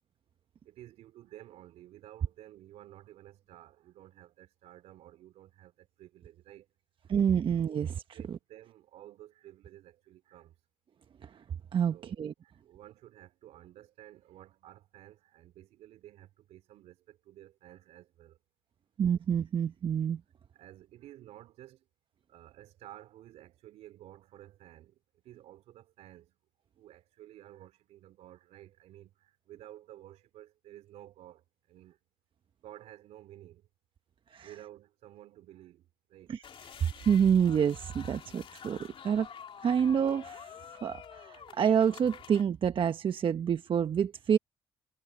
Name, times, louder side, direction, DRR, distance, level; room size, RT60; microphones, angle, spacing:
voice 1, 0.6-6.7 8.1-10.6 11.9-18.4 20.5-21.9 22.3-26.4 26.8-32.0 32.6-33.7 34.4-36.4 38.7-38.8, right 13 dB, 75° right, 3.8 m, -53 dB
voice 2, 7.1-8.4 11.2-11.4 11.7-12.3 19.0-20.2 34.3-34.5 36.3-36.4 37.0-39.3 39.6-44.4, right 8 dB, 50° right, 1.1 m, -28 dB
sound 1, 36.4-42.4, left 7 dB, 55° left, 2.4 m, -48 dB
supercardioid pair, 60°, 11 cm